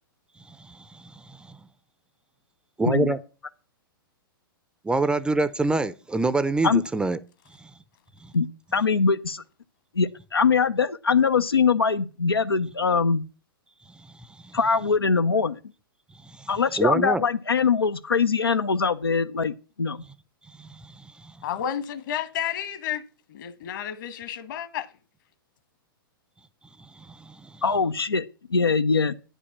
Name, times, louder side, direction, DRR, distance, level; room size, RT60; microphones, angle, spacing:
voice 1, 0.5-1.6 2.8-3.2 4.8-7.2 7.6-7.7 8.2-8.3 14.4-14.6 16.2-16.5 16.8-17.2 20.6-21.1 27.0-27.6, right 3 dB, 5° right, 0.5 m, -26 dB
voice 2, 8.7-9.4 9.9-13.3 14.5-15.6 16.5-20.0 27.6-28.2 28.5-29.1, left 5 dB, 90° left, 0.6 m, -22 dB
voice 3, 21.4-24.9, left 9 dB, 60° left, 1.4 m, -31 dB
9.6 x 5.5 x 7.1 m
figure-of-eight pair, 110°, 12 cm